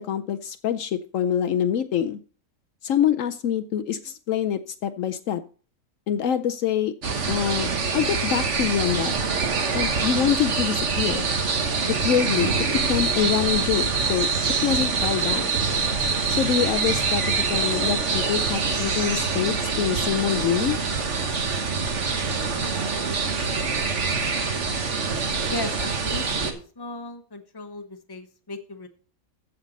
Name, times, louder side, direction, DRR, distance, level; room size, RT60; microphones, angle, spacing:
voice 1, 0.0-2.2 2.8-5.4 6.1-6.9 7.3-9.1 9.7-11.3 11.9-14.3 14.6-15.6 16.3-20.8, left 9 dB, 70° left, 10 dB, 1.0 m, -25 dB
sound 1, 7.0-26.5, right 4 dB, 60° right, 1.6 m, -25 dB
voice 2, 25.5-28.9, left 2 dB, 20° left, 6 dB, 1.0 m, -36 dB
14.5 x 5.8 x 4.0 m, 0.40 s
omnidirectional pair, 1.5 m